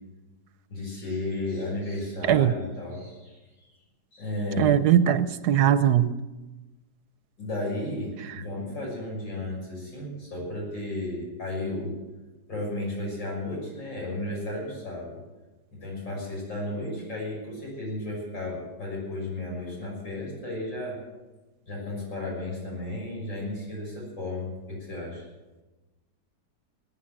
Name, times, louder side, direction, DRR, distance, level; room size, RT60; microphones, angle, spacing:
voice 1, 0.7-3.4 4.1-4.8 7.4-12.0 12.5-15.2 15.7-21.0 21.7-25.3, left 1 dB, 80° left, -3 dB, 7.0 m, -33 dB
voice 2, 4.6-6.1, right 10 dB, 70° right, 14 dB, 1.1 m, -20 dB
19.0 x 9.8 x 7.7 m, 1.1 s
omnidirectional pair, 1.9 m